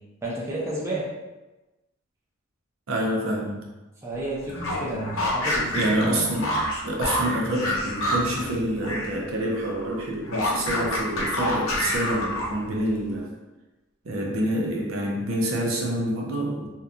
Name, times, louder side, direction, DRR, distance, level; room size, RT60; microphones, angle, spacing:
voice 1, 0.2-1.1 4.0-6.1, right 1 dB, 15° right, -6 dB, 0.5 m, -31 dB
voice 2, 2.9-3.7 5.8-6.6 6.8-13.3 14.0-16.7, right 1 dB, 75° right, -1 dB, 0.5 m, -27 dB
sound 1, 4.4-9.2 9.4-12.7, left 1 dB, 85° left, 0.6 m, -28 dB
2.8 x 2.2 x 2.4 m, 1.1 s
head